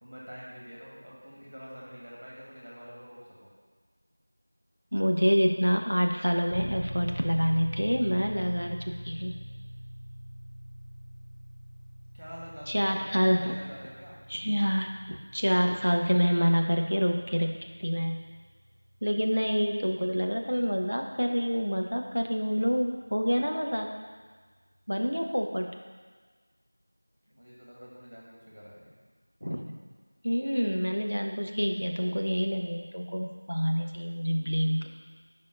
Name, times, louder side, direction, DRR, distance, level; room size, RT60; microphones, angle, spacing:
voice 1, 0.0-3.5 12.1-14.2 27.3-28.9, equal, 20° right, -5 dB, 1.5 m, -46 dB
voice 2, 4.9-9.4 12.7-13.5 14.3-17.5 17.8-18.2 19.0-23.9 24.9-25.7 29.4-29.6 30.2-34.9, equal, 85° left, 2 dB, 0.9 m, -27 dB
sound 1, 6.5-23.3, equal, 40° right, 0.4 m, -44 dB
11.0 x 5.6 x 2.6 m, 1.5 s
figure-of-eight pair, 180°, 0 cm